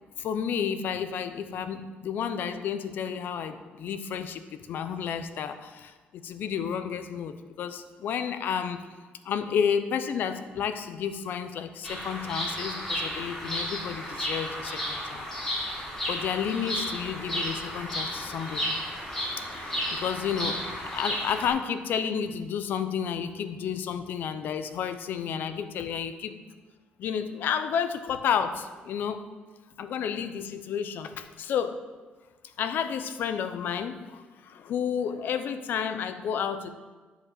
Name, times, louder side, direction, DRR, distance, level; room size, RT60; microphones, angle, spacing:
voice 1, 0.2-8.8 9.2-15.3 16.1-18.7 19.5-26.4 27.0-29.2 29.8-31.8 32.6-36.7, left 7 dB, 65° left, 10 dB, 0.7 m, -31 dB
Bird vocalization bird call bird song, 11.8-21.5, equal, 15° left, 3.6 m, -33 dB
10.0 x 5.2 x 7.9 m, 1.3 s
cardioid pair, 125°, 4 cm